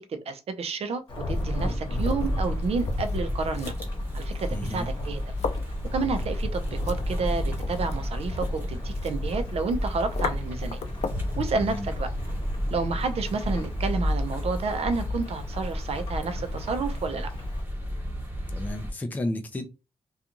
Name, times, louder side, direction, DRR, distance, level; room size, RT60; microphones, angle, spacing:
voice 1, 0.1-3.7 4.1-5.2 5.9-10.8 11.4-12.1 12.7-17.3, right 4 dB, 70° right, 0.5 m, -30 dB
Thunderstorm / Rain, 1.1-17.6, left 1 dB, 45° left, 1.0 m, -36 dB
sound 1, 1.2-11.4, left 6 dB, 85° left, 0.4 m, -40 dB
sound 2, 1.2-18.9, left 1 dB, 20° right, 0.9 m, -32 dB
voice 2, 4.5-4.9 11.5-11.9 18.5-19.7, left 1 dB, 15° left, 0.3 m, -32 dB
2.5 x 2.3 x 2.9 m
wide cardioid pair, 115°, 11 cm